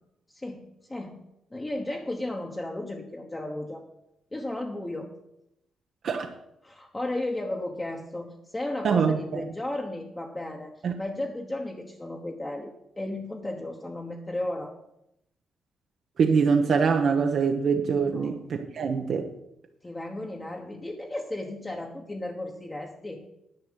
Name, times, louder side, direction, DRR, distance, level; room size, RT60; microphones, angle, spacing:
voice 1, 0.3-1.2 1.5-3.9 4.3-5.1 6.6-10.7 11.0-14.7 18.0-18.4 19.8-23.2, left 1 dB, 15° left, 1 dB, 1.2 m, -34 dB
voice 2, 8.8-9.4 10.8-10.9 16.2-19.3, right 5 dB, 55° right, 4 dB, 0.9 m, -24 dB
10.5 x 5.4 x 8.1 m, 0.81 s
cardioid pair, 110°, 0 cm